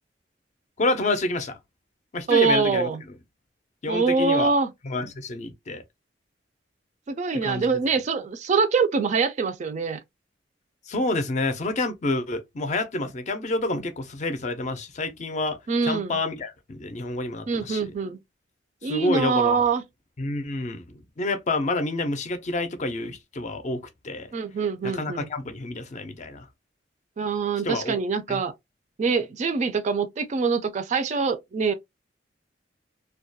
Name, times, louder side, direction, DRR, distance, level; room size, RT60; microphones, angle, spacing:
voice 1, 0.8-1.6 2.1-2.9 3.8-4.6 4.8-5.8 7.4-7.7 10.9-15.6 15.8-17.9 18.8-19.7 20.2-24.3 24.8-26.5 27.6-28.0 28.3-28.4, left 2 dB, 40° left, 0.4 m, -28 dB
voice 2, 2.3-3.0 3.9-4.7 7.1-10.0 15.7-16.2 17.5-18.2 18.8-19.8 24.3-25.3 27.2-28.5 29.0-31.7, right 5 dB, 40° right, 0.3 m, -24 dB
2.2 x 2.2 x 2.6 m
head